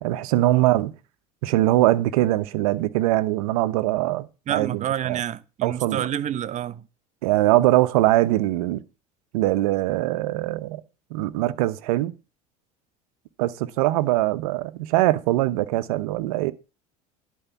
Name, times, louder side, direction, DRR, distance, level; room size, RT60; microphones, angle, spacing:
voice 1, 0.0-0.9 1.4-5.2 5.6-6.0 7.2-8.8 9.3-10.8 11.1-12.1 13.4-16.5, right 16 dB, 80° right, 0.9 m, -22 dB
voice 2, 4.5-6.9, right 10 dB, 40° right, 0.8 m, -28 dB
11.0 x 4.7 x 7.0 m
hypercardioid pair, 85°, 19 cm